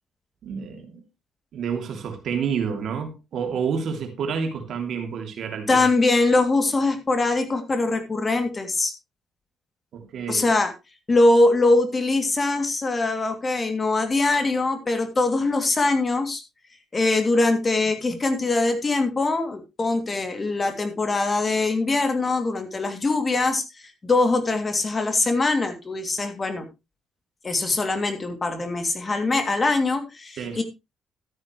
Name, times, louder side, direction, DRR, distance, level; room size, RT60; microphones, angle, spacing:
voice 1, 0.4-1.0 1.5-5.9 9.9-10.4 30.4-30.6, right 6 dB, 65° right, 2.9 m, -29 dB
voice 2, 5.7-8.9 10.3-10.7 11.1-16.4 16.9-26.7 27.4-30.6, left 2 dB, 30° left, 2.8 m, -22 dB
12.5 x 9.7 x 3.2 m
cardioid pair, 90°, 0 cm